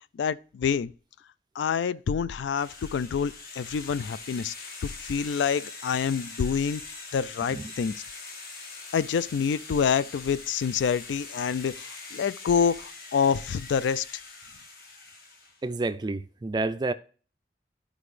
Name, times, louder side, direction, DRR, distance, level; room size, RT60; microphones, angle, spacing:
voice 1, 0.1-0.9 1.6-8.0 8.9-14.0, left 6 dB, 85° left, 0.3 m, -27 dB
sound 1, 2.5-15.6, left 3 dB, 55° left, 1.3 m, -43 dB
voice 2, 15.6-16.9, right 2 dB, 25° right, 0.3 m, -29 dB
11.5 x 4.9 x 3.2 m
head